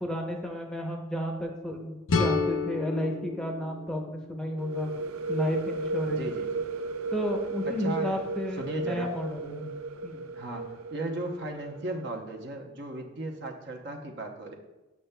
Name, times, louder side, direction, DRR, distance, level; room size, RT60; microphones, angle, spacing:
voice 1, 0.0-4.9 5.3-6.3 7.1-9.7 10.0-10.2, equal, 5° left, 1 dB, 0.7 m, -32 dB
sound 1, 2.1-5.0, left 4 dB, 65° left, 0.5 m, -31 dB
sound 2, 4.6-12.2, right 3 dB, 90° right, 0.4 m, -35 dB
voice 2, 6.2-6.5 7.7-8.2 8.6-9.1 10.3-14.5, right 2 dB, 55° right, 2 dB, 0.8 m, -36 dB
8.3 x 6.4 x 2.2 m, 1.0 s
head